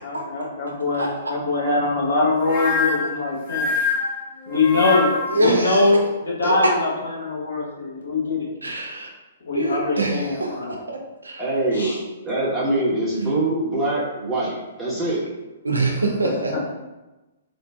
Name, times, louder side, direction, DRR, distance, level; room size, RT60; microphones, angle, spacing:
voice 1, 0.0-3.7 4.5-8.5 9.4-10.7 11.7-12.0 16.2-16.6, left 3 dB, 70° left, -4 dB, 1.2 m, -23 dB
sound 1, 2.4-5.5, left 4 dB, 45° left, 0.9 m, -25 dB
voice 2, 5.3-5.8 6.4-6.5 8.6-9.1 9.5-10.5 10.9-11.0 11.2-11.4 15.6-16.6, right 2 dB, 85° right, 1 dB, 0.6 m, -23 dB
voice 3, 11.4-12.0 12.2-15.2, right 2 dB, 5° right, -10 dB, 1.3 m, -23 dB
3.7 x 2.5 x 2.4 m, 1.1 s
figure-of-eight pair, 120°, 0 cm